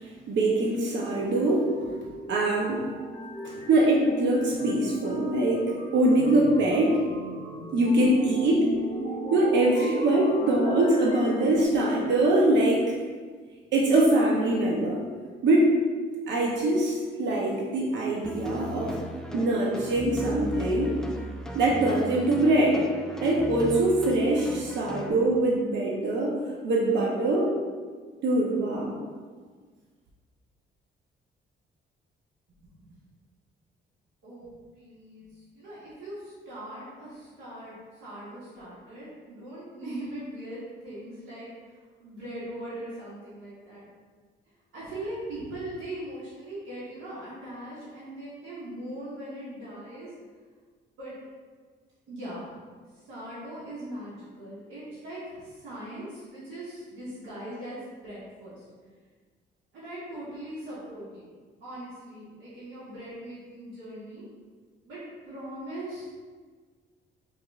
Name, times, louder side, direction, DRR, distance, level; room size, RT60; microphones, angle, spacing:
voice 1, 0.3-1.7 2.3-2.9 3.4-7.0 7.7-8.7 9.3-12.9 13.7-15.0 15.4-15.8 16.3-19.0 19.3-21.0 21.5-22.8 23.2-26.3 26.6-27.5 28.2-29.0, right 1 dB, 65° right, -3 dB, 0.7 m, -23 dB
sound 1, 1.0-11.6, equal, 65° left, 1.0 m, -38 dB
sound 2, 18.2-25.1, equal, 5° left, 0.3 m, -37 dB
voice 2, 34.2-35.3 35.5-41.5 42.0-43.8 44.7-50.1 51.0-51.1 52.1-52.5 53.1-58.6 59.7-61.3 61.6-64.2 64.9-66.1, right 1 dB, 80° right, -10 dB, 1.3 m, -40 dB
4.8 x 3.1 x 2.4 m, 1.5 s
cardioid pair, 90°, 20 cm